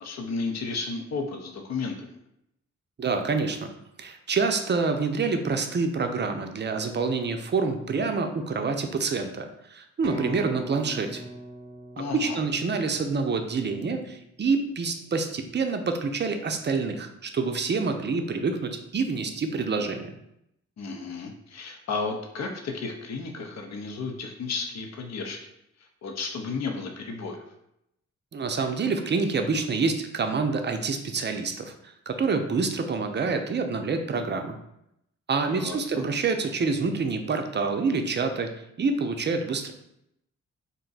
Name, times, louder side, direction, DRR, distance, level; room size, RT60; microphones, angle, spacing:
voice 1, 0.0-2.1 12.0-12.4 20.8-25.4 26.0-27.4 35.4-36.0, left 4 dB, 55° left, 3 dB, 0.6 m, -33 dB
voice 2, 3.0-3.7 4.0-11.2 12.1-20.1 28.3-34.6 35.3-38.5 38.8-39.7, right 4 dB, 35° right, 6 dB, 0.5 m, -27 dB
sound 1, 10.0-13.8, right 1 dB, 90° right, 0.6 m, -41 dB
2.6 x 2.2 x 3.9 m, 0.80 s
supercardioid pair, 45°, 32 cm